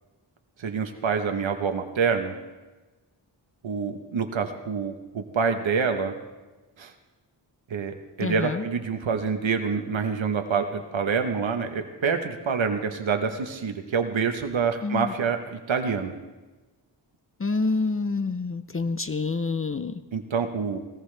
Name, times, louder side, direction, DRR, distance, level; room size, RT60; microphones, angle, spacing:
voice 1, 0.6-2.3 3.6-6.1 6.8-6.9 7.7-16.1 20.1-20.8, right 5 dB, 85° right, 6 dB, 1.2 m, -27 dB
voice 2, 8.2-8.6 14.8-15.1 17.4-20.0, left 3 dB, 30° left, 11 dB, 0.6 m, -27 dB
20.0 x 18.0 x 3.4 m, 1.2 s
wide cardioid pair, 80°, 45 cm